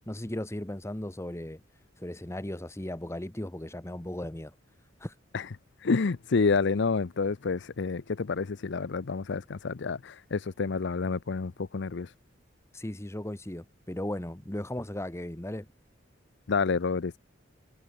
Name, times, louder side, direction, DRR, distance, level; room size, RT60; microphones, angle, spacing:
voice 1, 0.1-1.6 2.0-4.5 5.0-5.1 12.7-15.7, left 1 dB, 15° left, 1.2 m, -36 dB
voice 2, 5.8-12.1 16.5-17.2, left 4 dB, 65° left, 0.6 m, -28 dB
head